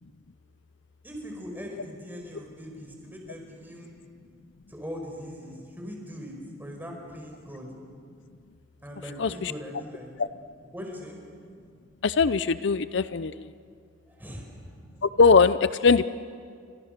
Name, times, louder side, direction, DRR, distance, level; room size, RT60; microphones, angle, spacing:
voice 1, 1.0-3.9 4.7-6.3 6.6-7.7 8.8-10.1 10.7-11.2 14.2-14.6, equal, 10° right, 1 dB, 5.0 m, -40 dB
voice 2, 9.2-9.5 10.2-10.3 12.0-13.5 15.0-16.0, left 4 dB, 60° left, 14 dB, 0.5 m, -21 dB
30.0 x 25.5 x 6.7 m, 2.2 s
head